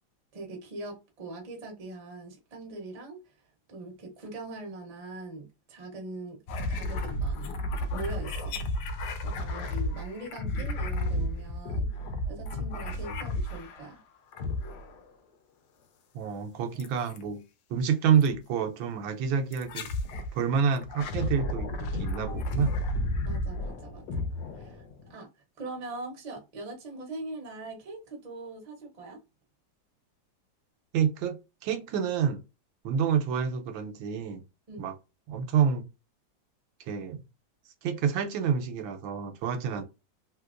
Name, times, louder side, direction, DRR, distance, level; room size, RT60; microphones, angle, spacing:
voice 1, 0.3-3.2 3.7-6.4 6.7-8.6 9.2-11.9 12.3-14.0 23.2-24.2 24.5-24.8 25.1-25.3 25.6-29.2 34.7-34.9, right 2 dB, 35° right, 0.6 m, -41 dB
sound 1, 6.5-13.9 14.3-15.1 16.8-17.2 18.2-18.4 19.5-20.3 20.8-25.1, left 1 dB, 75° left, 1.1 m, -32 dB
voice 2, 16.1-17.4 17.7-19.9 20.3-22.7 30.9-32.4 32.8-34.4 34.8-34.9 35.3-35.8 36.9-37.2 37.8-39.8, right 7 dB, 80° right, 1.3 m, -28 dB
3.2 x 2.9 x 2.4 m
omnidirectional pair, 2.1 m